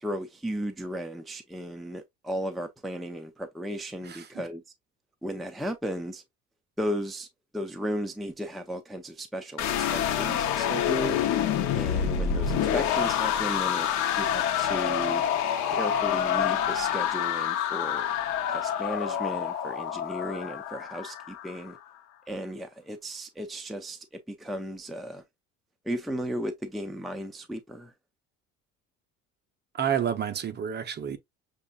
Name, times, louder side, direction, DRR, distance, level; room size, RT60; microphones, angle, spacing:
voice 1, 0.0-4.6 5.2-6.2 6.8-7.3 7.5-11.2 11.7-13.9 14.2-15.2 15.7-18.1 18.5-21.8 22.3-25.2 25.9-27.9, equal, ahead, 0.5 m, -35 dB
sound 1, 9.6-21.6, left 9 dB, 70° left, 0.9 m, -27 dB
voice 2, 29.7-31.2, right 8 dB, 35° right, 0.8 m, -29 dB
6.6 x 2.5 x 2.4 m
cardioid pair, 120°, 30 cm